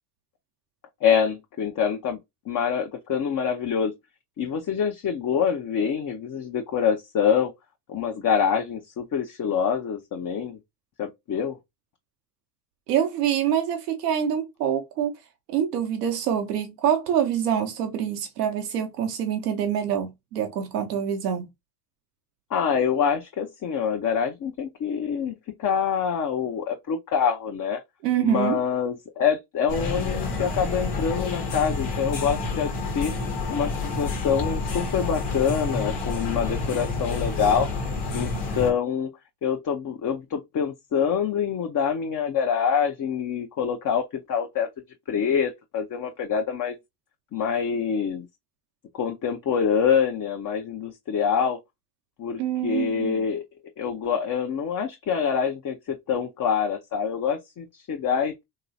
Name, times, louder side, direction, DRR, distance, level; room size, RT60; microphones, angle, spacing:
voice 1, 1.0-2.2 2.5-3.9 4.4-7.5 7.9-10.6 11.0-11.6 22.5-27.8 28.2-33.1 33.5-37.7 38.1-39.1 39.4-44.7 45.1-46.8 47.3-48.3 48.9-51.6 52.2-53.4 53.8-58.4, left 7 dB, 45° left, 0.7 m, -25 dB
voice 2, 12.9-15.1 15.5-21.5 28.0-28.6 52.4-53.2, right 9 dB, 90° right, 0.7 m, -25 dB
sound 1, 29.7-38.7, left 3 dB, 80° left, 1.2 m, -29 dB
3.0 x 2.8 x 2.6 m
hypercardioid pair, 55°, 47 cm